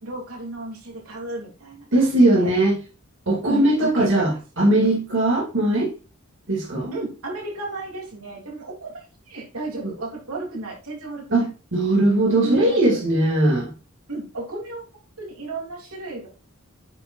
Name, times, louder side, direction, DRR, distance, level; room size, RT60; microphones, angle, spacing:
voice 1, 0.0-2.5 3.5-4.4 5.7-5.9 6.9-11.5 12.4-13.0 14.1-16.3, right 2 dB, 85° right, -1 dB, 3.1 m, -33 dB
voice 2, 1.9-2.8 3.3-4.3 4.6-5.9 6.5-6.9 11.3-13.7, right 1 dB, 60° right, -4 dB, 2.7 m, -19 dB
9.6 x 5.9 x 2.5 m, 0.32 s
head